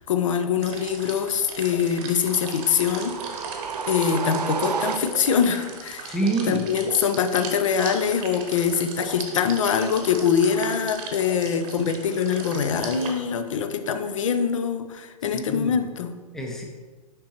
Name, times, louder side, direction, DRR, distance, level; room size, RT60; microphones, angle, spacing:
voice 1, 0.1-3.2 3.9-6.1 6.5-16.2, left 7 dB, 50° left, 8 dB, 0.6 m, -24 dB
sound 1, 0.6-13.1, right 4 dB, 30° right, 1.0 m, -38 dB
sound 2, 2.3-5.5, right 6 dB, 80° right, 0.4 m, -31 dB
voice 2, 6.0-6.7 15.2-15.8 16.3-16.6, right 2 dB, ahead, 1 dB, 0.6 m, -27 dB
6.8 x 5.2 x 2.9 m, 1.4 s
figure-of-eight pair, 115°, 20 cm